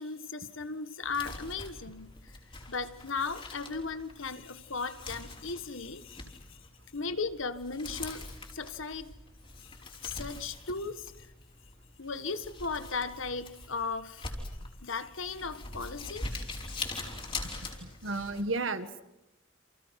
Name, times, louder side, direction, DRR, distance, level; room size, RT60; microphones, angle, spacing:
voice 1, 0.0-2.3 2.7-6.6 6.9-9.2 9.6-9.7 10.0-11.3 12.0-14.3 14.8-16.3, left 4 dB, 80° left, 1.6 m, -37 dB
Crumpling crinkling, 1.0-18.4, left 3 dB, 25° left, 4.7 m, -43 dB
voice 2, 17.8-19.0, right 3 dB, 75° right, 1.8 m, -33 dB
30.0 x 28.5 x 6.0 m
head